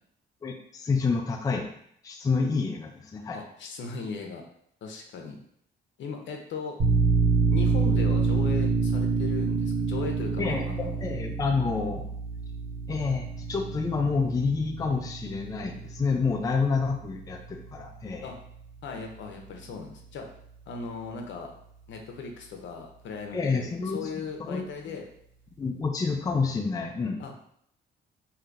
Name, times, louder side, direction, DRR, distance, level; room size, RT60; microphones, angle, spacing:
voice 1, 0.4-1.7 2.0-3.4 10.4-12.0 12.9-18.3 23.3-24.1 24.4-25.0 25.6-27.2, left 4 dB, 20° left, 3 dB, 0.4 m, -28 dB
voice 2, 3.3-4.4 4.8-5.4 6.0-6.8 7.5-11.1 18.2-18.3 18.8-20.3 20.7-21.5 21.9-25.0 27.2-27.3, left 5 dB, 70° left, 3 dB, 0.7 m, -38 dB
sound 1, 6.8-18.1, right 4 dB, 70° right, 1.0 m, -27 dB
3.2 x 2.7 x 2.5 m, 0.68 s
cardioid pair, 90°, 20 cm